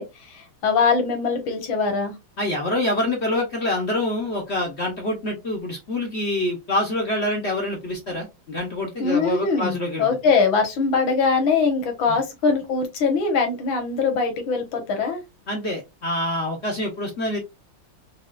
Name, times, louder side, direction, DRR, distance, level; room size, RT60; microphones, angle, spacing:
voice 1, 0.0-2.1 9.0-15.2, left 5 dB, 75° left, 2.0 m, -22 dB
voice 2, 2.4-10.2 12.1-12.2 15.5-17.4, left 1 dB, 50° left, 0.8 m, -26 dB
5.5 x 2.4 x 2.4 m
omnidirectional pair, 2.2 m